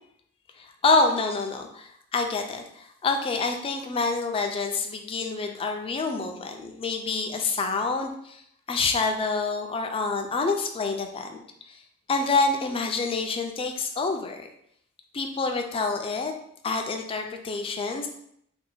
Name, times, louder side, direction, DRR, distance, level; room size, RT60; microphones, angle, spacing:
voice 1, 0.6-8.4 8.7-11.4 11.7-11.8 12.1-14.5 15.1-16.3 16.6-18.1, left 3 dB, 25° left, 4 dB, 0.3 m, -27 dB
2.7 x 2.2 x 4.1 m, 0.71 s
head